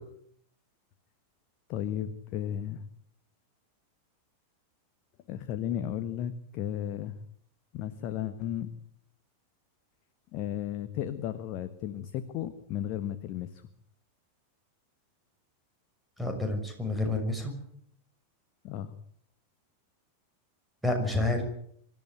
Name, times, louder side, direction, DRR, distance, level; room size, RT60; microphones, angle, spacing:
voice 1, 1.7-2.9 5.3-7.1 7.7-8.7 10.3-13.6 18.6-18.9, left 11 dB, 40° left, 9 dB, 1.4 m, -34 dB
voice 2, 16.2-17.5 20.8-21.4, left 2 dB, 5° right, 4 dB, 6.2 m, -29 dB
25.0 x 13.0 x 9.3 m, 0.68 s
figure-of-eight pair, 90°, 0 cm